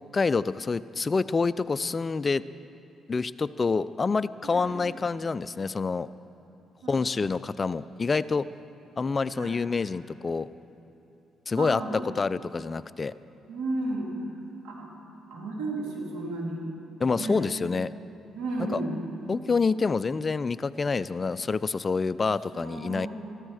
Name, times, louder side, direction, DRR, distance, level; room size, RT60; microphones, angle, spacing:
voice 1, 0.0-2.4 3.1-6.1 6.9-8.5 9.0-10.5 11.5-13.1 17.0-17.9 18.7-18.8 19.3-23.1, left 4 dB, 30° left, 16 dB, 0.3 m, -27 dB
voice 2, 4.4-4.8 6.8-7.1 9.4-9.6 11.5-12.0 13.5-14.1 14.6-14.9 15.3-16.7 17.1-17.5 18.3-19.1 22.5-23.1, right 2 dB, 90° right, -2 dB, 2.5 m, -33 dB
13.5 x 13.0 x 4.9 m, 3.0 s
cardioid pair, 90°, 0 cm